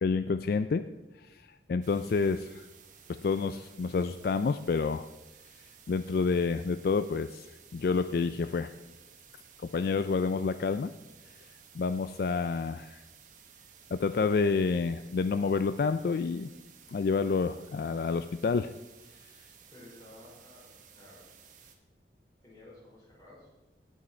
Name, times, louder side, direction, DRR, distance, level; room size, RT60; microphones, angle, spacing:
voice 1, 0.0-0.8 1.2-2.7 3.1-5.1 5.9-7.5 7.7-8.7 9.6-10.9 11.7-13.0 13.9-16.5 16.9-18.7, left 4 dB, 55° left, 11 dB, 0.3 m, -29 dB
sound 1, 1.8-21.8, right 7 dB, 45° right, 1.2 m, -56 dB
voice 2, 19.7-21.2 22.4-23.5, left 1 dB, 20° left, -6 dB, 4.6 m, -53 dB
18.0 x 6.3 x 4.4 m, 1.0 s
head